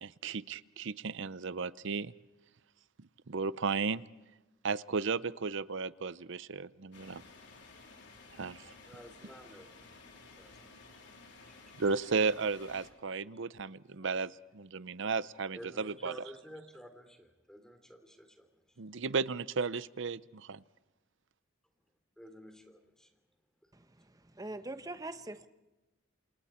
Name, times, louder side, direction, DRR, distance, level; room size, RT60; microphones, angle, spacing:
voice 1, 0.0-2.1 3.3-4.0 4.6-7.2 8.4-8.7 11.8-16.1 18.8-20.6, right 4 dB, 60° right, 0.7 m, -34 dB
sound 1, 6.9-12.9, left 3 dB, 60° left, 3.5 m, -55 dB
voice 2, 8.9-10.6 10.9-11.0 11.4-11.6 14.0-14.1 15.5-18.8 22.2-23.1 23.6-23.7, equal, 5° left, 2.9 m, -52 dB
voice 3, 23.7-25.5, right 2 dB, 15° right, 1.1 m, -43 dB
28.0 x 28.0 x 4.4 m
head